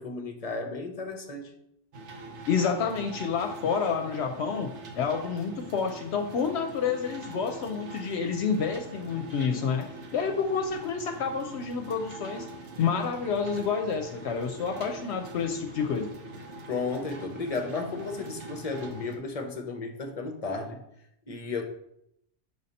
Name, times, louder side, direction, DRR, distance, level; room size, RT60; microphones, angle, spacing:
voice 1, 0.0-1.5 16.7-20.8 21.3-21.6, left 3 dB, 40° left, 4 dB, 0.7 m, -33 dB
sound 1, 1.9-19.2, right 2 dB, 80° right, 1.1 m, -44 dB
voice 2, 2.5-4.7 5.0-9.8 10.1-12.5 12.8-16.1, left 6 dB, 75° left, 5 dB, 0.8 m, -29 dB
6.6 x 2.8 x 5.2 m, 0.78 s
omnidirectional pair, 1.2 m